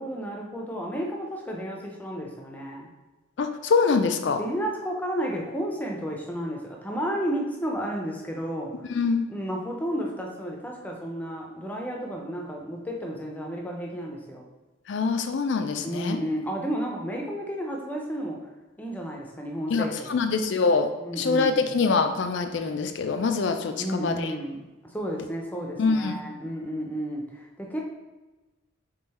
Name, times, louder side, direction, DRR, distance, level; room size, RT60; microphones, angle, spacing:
voice 1, 0.0-2.9 4.4-8.9 9.3-14.5 15.8-18.4 18.8-20.3 21.0-21.8 23.8-27.8, equal, 10° left, 0 dB, 0.5 m, -32 dB
voice 2, 3.4-4.4 8.9-9.3 14.9-16.2 19.7-20.9 21.2-24.3 25.8-26.2, left 4 dB, 60° left, 8 dB, 0.4 m, -24 dB
3.8 x 3.4 x 4.1 m, 1.1 s
head